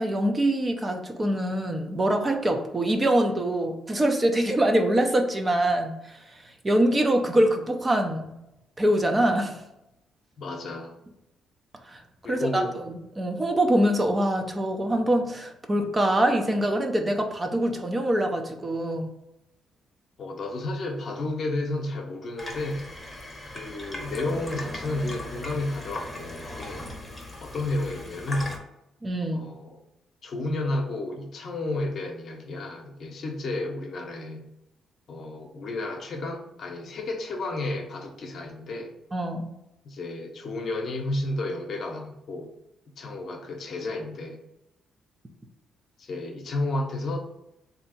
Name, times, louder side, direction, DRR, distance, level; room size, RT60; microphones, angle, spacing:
voice 1, 0.0-8.4 8.8-9.6 11.9-12.0 12.3-19.1 29.0-29.5 39.1-39.5, right 1 dB, 25° right, 4 dB, 0.6 m, -24 dB
voice 2, 10.4-11.0 12.2-12.8 20.2-22.9 23.5-26.9 27.4-28.6 29.3-29.8 30.2-34.4 35.1-39.0 39.8-42.5 43.0-44.4 46.0-47.2, left 2 dB, 55° left, 2 dB, 0.8 m, -32 dB
Water tap faucet / Sink (filling or washing), 22.4-28.6, left 1 dB, 5° left, 0.9 m, -38 dB
3.4 x 2.8 x 4.1 m, 0.87 s
cardioid pair, 90°, 0 cm